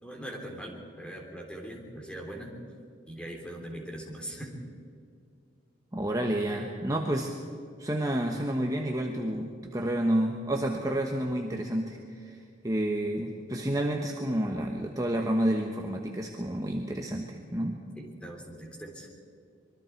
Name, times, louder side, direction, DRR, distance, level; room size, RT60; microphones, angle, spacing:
voice 1, 0.0-2.5 3.1-4.6 18.0-19.1, right 1 dB, 5° left, 0 dB, 3.5 m, -41 dB
voice 2, 5.9-7.3 7.8-17.8, right 1 dB, 20° right, 1 dB, 1.2 m, -30 dB
25.0 x 22.5 x 4.6 m, 2.2 s
head